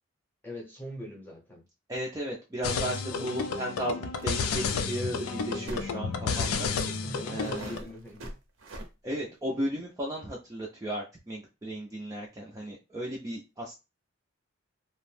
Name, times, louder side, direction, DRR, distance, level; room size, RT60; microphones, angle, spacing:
voice 1, 0.4-1.6 2.6-4.0 5.5-5.8 7.0-8.4, equal, 10° left, 0.7 m, -43 dB
voice 2, 1.9-6.7 7.3-7.7 9.0-13.7, equal, 15° right, 0.4 m, -35 dB
sound 1, 2.6-7.8, left 5 dB, 90° left, 0.4 m, -31 dB
sound 2, 4.1-4.3 4.6-4.7 5.7-5.9 6.7-6.8 7.4-8.9, right 1 dB, 65° right, 0.6 m, -42 dB
2.6 x 2.0 x 3.2 m
head